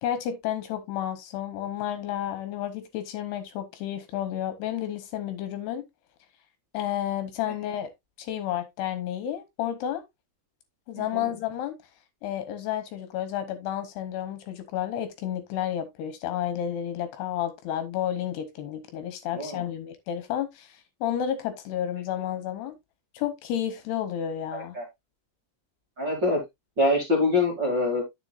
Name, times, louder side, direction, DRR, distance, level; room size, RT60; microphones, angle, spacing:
voice 1, 0.0-5.9 6.7-7.9 8.2-10.0 10.9-11.8 12.2-22.8 23.1-24.8, left 10 dB, 75° left, 2.8 m, -31 dB
voice 2, 24.5-24.8 26.0-26.4 26.8-28.0, left 2 dB, 30° right, 2.4 m, -25 dB
9.7 x 7.0 x 2.5 m
omnidirectional pair, 5.1 m